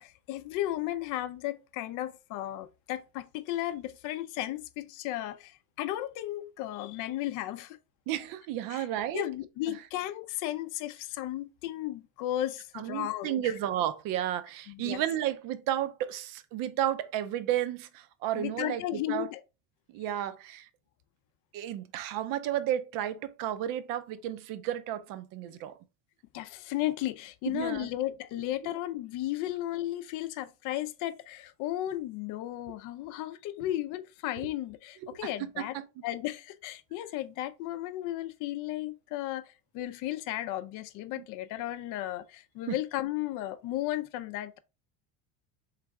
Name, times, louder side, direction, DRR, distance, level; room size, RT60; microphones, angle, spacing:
voice 1, 0.0-7.8 8.7-8.9 9.1-13.5 14.7-15.0 18.3-19.4 26.3-44.6, left 14 dB, 50° left, 0.5 m, -34 dB
voice 2, 8.1-9.2 9.7-9.8 12.7-19.3 19.9-20.7 21.5-25.8 27.5-27.9 35.0-35.3 35.6-35.8 41.2-41.3 42.7-42.8, right 11 dB, 55° right, 0.6 m, -32 dB
3.6 x 3.2 x 3.4 m
cardioid pair, 150°, 41 cm